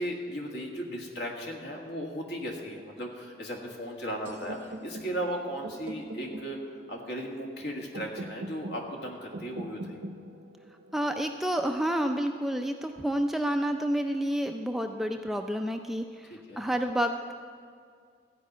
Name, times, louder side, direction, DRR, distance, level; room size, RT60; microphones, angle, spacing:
voice 1, 0.0-6.6 6.9-10.0 16.3-16.7, equal, 65° left, 0 dB, 1.8 m, -36 dB
sound 1, 4.3-12.2, right 1 dB, 70° right, 0.7 m, -43 dB
voice 2, 10.9-17.3, equal, ahead, 4 dB, 0.4 m, -29 dB
14.0 x 5.3 x 9.1 m, 2.1 s
head